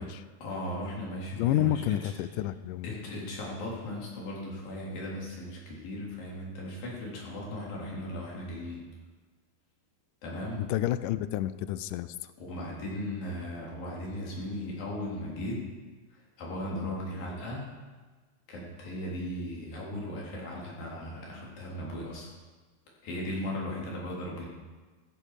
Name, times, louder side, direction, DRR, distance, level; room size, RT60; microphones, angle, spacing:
voice 1, 0.4-2.1 2.8-8.8 10.2-10.6 12.4-15.7 16.4-17.7 18.5-22.3 23.0-24.5, left 1 dB, 65° left, -4 dB, 5.3 m, -37 dB
voice 2, 1.4-2.9 10.6-12.3, left 13 dB, 85° left, 14 dB, 1.8 m, -29 dB
15.5 x 14.5 x 5.0 m, 1.3 s
omnidirectional pair, 4.4 m